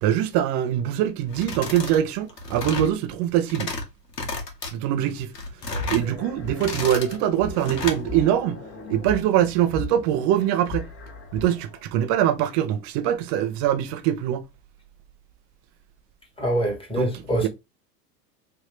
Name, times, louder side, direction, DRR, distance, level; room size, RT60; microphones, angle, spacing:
voice 1, 0.0-3.7 4.7-5.3 5.9-8.6 8.9-10.9 11.3-14.4 16.9-17.5, right 11 dB, 35° right, 0.5 m, -23 dB
sound 1, 1.3-2.0 2.3-2.9 3.4-3.8 4.1-4.7 5.2-6.1 6.5-7.2 7.6-8.0, left 3 dB, 85° left, 1.2 m, -32 dB
sound 2, 5.7-11.8, left 2 dB, 25° left, 1.0 m, -37 dB
voice 2, 16.4-17.5, right 1 dB, 10° left, 1.3 m, -24 dB
3.2 x 2.7 x 3.1 m
hypercardioid pair, 100°, 49 cm